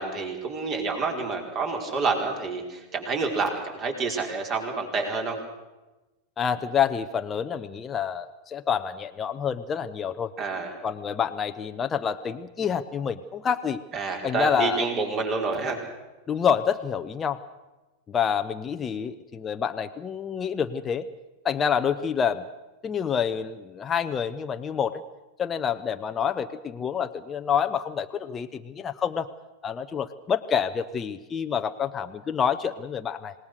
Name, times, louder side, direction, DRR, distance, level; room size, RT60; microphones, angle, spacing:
voice 1, 0.0-5.4 10.4-10.7 13.9-15.8, right 4 dB, 30° right, 3 dB, 4.9 m, -28 dB
voice 2, 6.4-10.3 10.8-13.8 14.2-14.9 16.3-17.4 18.1-21.1 21.4-22.5 22.8-25.0 25.4-29.3 29.6-33.3, left 7 dB, 20° left, 7 dB, 0.8 m, -27 dB
27.0 x 19.0 x 6.5 m, 1.1 s
figure-of-eight pair, 90°, 0 cm